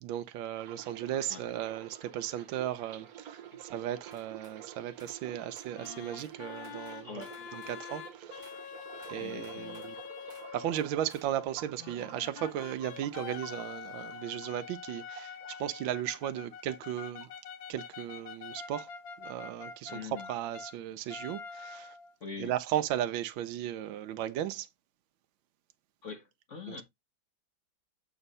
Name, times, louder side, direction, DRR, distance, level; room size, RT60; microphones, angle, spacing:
voice 1, 0.0-7.2 7.5-8.4 9.1-10.0 10.5-17.3 17.7-18.9 19.2-21.9 22.4-24.7 26.7-26.8, right 11 dB, 80° right, 1.4 m, -36 dB
sound 1, 0.6-16.5 16.8-17.7 18.0-18.3, right 9 dB, 55° right, 1.3 m, -50 dB
sound 2, 4.1-4.6 5.0-5.2 5.6-6.4 6.6-7.8 8.4-8.6 9.0-9.9 10.3-10.5 10.8-11.3, right 2 dB, 15° right, 1.5 m, -58 dB
sound 3, 5.7-10.9 11.8-20.8 21.1-22.1, left 7 dB, 75° left, 1.6 m, -45 dB
voice 2, 7.0-7.4 9.2-9.9 19.9-20.3 22.2-22.5 26.0-26.8, left 5 dB, 45° left, 1.3 m, -43 dB
7.1 x 3.2 x 5.4 m
omnidirectional pair, 2.1 m